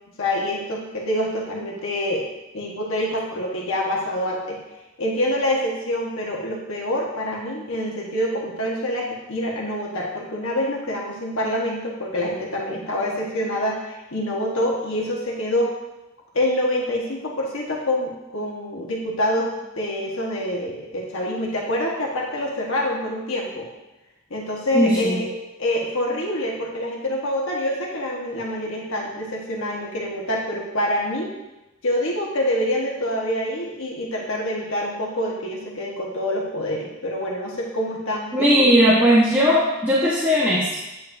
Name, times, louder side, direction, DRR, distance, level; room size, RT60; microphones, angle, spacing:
voice 1, 0.2-2.3 2.5-4.6 5.0-15.7 16.3-23.7 24.3-25.3 25.6-31.3 31.8-38.8, left 1 dB, 65° left, -2 dB, 1.4 m, -26 dB
voice 2, 24.7-25.2 38.3-40.7, equal, 10° right, -7 dB, 1.2 m, -17 dB
9.4 x 8.6 x 2.7 m, 0.98 s
head